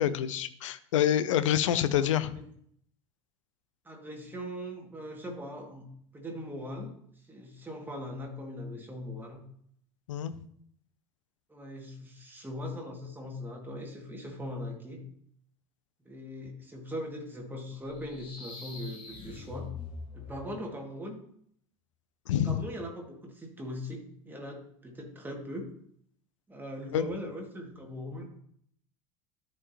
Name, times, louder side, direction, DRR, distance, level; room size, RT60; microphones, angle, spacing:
voice 1, 0.0-2.3 10.1-10.4 22.3-22.6 26.9-27.0, left 10 dB, 65° left, 14 dB, 0.6 m, -27 dB
voice 2, 3.8-5.9 6.1-9.4 11.5-15.0 16.1-19.7 20.1-21.2 22.4-25.7 26.5-28.2, left 1 dB, 10° right, 1 dB, 2.1 m, -40 dB
sound 1, 17.9-20.7, left 4 dB, 30° left, 2.2 m, -44 dB
13.0 x 5.2 x 2.9 m, 0.66 s
figure-of-eight pair, 70°, 18 cm